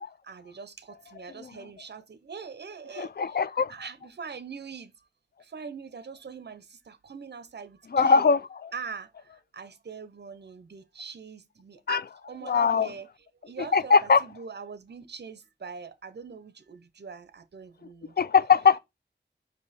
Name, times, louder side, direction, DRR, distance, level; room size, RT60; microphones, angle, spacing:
voice 1, 0.0-3.4 3.7-4.9 5.4-8.3 8.7-13.1 13.4-18.2, right 5 dB, 70° right, 0.7 m, -42 dB
voice 2, 3.0-3.7 7.9-8.7 11.9-12.0 12.5-12.9 13.7-14.2 18.2-18.8, left 5 dB, 60° left, 0.4 m, -21 dB
5.3 x 5.1 x 4.1 m
wide cardioid pair, 65°, 18 cm